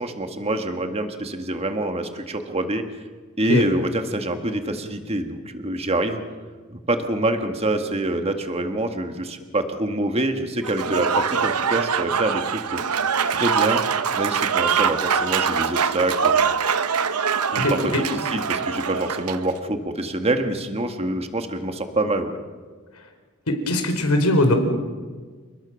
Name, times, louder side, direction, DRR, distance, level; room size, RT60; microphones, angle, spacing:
voice 1, 0.0-2.8 3.4-6.2 6.7-12.8 13.3-13.8 14.2-16.5 17.5-22.4, right 1 dB, 25° right, 6 dB, 1.8 m, -26 dB
Applause / Crowd, 10.6-19.5, right 6 dB, 85° right, 1.0 m, -23 dB
voice 2, 23.7-24.5, left 1 dB, 80° left, 5 dB, 4.7 m, -19 dB
29.5 x 20.0 x 6.4 m, 1.5 s
head